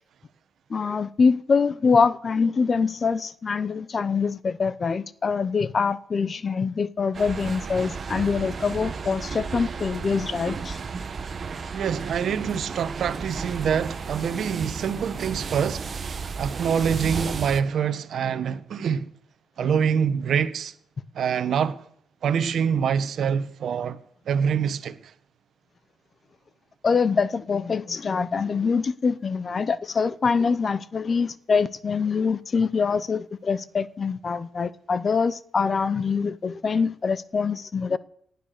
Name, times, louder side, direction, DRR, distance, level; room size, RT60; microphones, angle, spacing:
voice 1, 0.7-10.8 26.8-38.0, left 5 dB, 40° left, 0.8 m, -24 dB
sound 1, 7.1-17.6, right 5 dB, 40° right, 1.2 m, -33 dB
voice 2, 11.7-15.9 16.4-19.1 19.6-20.7 21.1-21.8 22.2-24.0 24.3-25.1, right 7 dB, 65° right, 1.2 m, -25 dB
18.0 x 9.6 x 6.7 m
cardioid pair, 90°, 0 cm